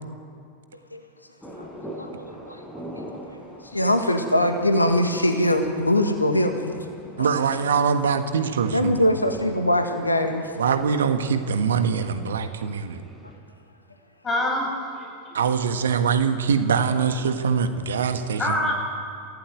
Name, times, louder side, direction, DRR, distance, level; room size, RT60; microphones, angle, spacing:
sound 1, 1.4-13.4, equal, ahead, 6.4 m, -43 dB
voice 1, 2.0-2.6 3.6-6.7 8.7-10.5, left 1 dB, 85° left, 6 dB, 1.9 m, -22 dB
voice 2, 7.2-9.0 10.6-13.0 15.3-18.6, right 6 dB, 65° right, 8 dB, 1.5 m, -23 dB
voice 3, 14.2-15.4 18.4-18.7, left 1 dB, 20° left, 0 dB, 7.7 m, -26 dB
27.5 x 16.0 x 9.2 m, 2.4 s
figure-of-eight pair, 90°, 0 cm